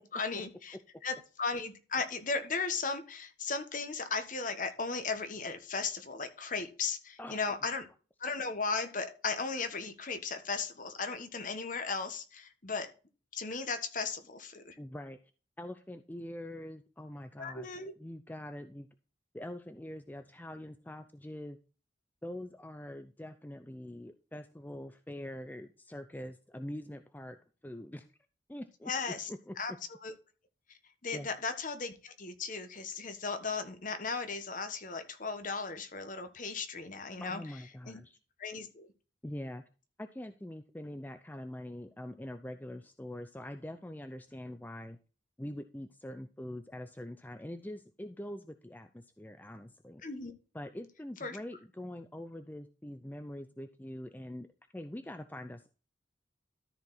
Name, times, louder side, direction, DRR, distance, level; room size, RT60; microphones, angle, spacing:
voice 1, 0.1-0.8 1.0-7.9 8.2-12.9 13.3-14.8 17.4-17.9 28.8-29.3 29.6-29.7 30.0-30.1 31.0-37.4 37.9-38.0 38.4-38.9 50.0-50.3 51.2-51.4, left 4 dB, 45° left, 8 dB, 1.3 m, -36 dB
voice 2, 14.8-15.2 15.6-17.7 18.0-18.9 19.3-21.6 22.2-27.4 27.6-28.0 28.5-28.9 29.3-29.8 31.1-31.3 37.2-38.2 39.2-39.6 40.0-45.0 45.4-50.0 50.5-54.5 54.7-55.7, left 1 dB, 10° left, 9 dB, 0.5 m, -44 dB
13.5 x 4.8 x 4.0 m, 0.35 s
head